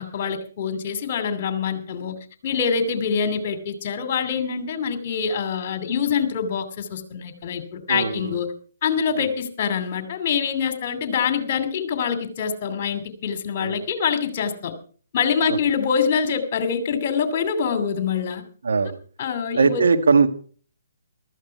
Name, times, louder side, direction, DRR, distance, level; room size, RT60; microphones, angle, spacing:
voice 1, 0.0-2.2 2.4-8.5 8.8-14.7 15.1-18.4 19.2-19.8, left 6 dB, 40° left, 10 dB, 2.6 m, -25 dB
voice 2, 7.9-8.3 9.2-9.3 13.6-13.8 15.5-15.6 18.6-19.0 19.5-20.3, right 5 dB, 70° right, 7 dB, 1.7 m, -20 dB
14.5 x 13.5 x 4.7 m, 0.43 s
figure-of-eight pair, 140°, 0 cm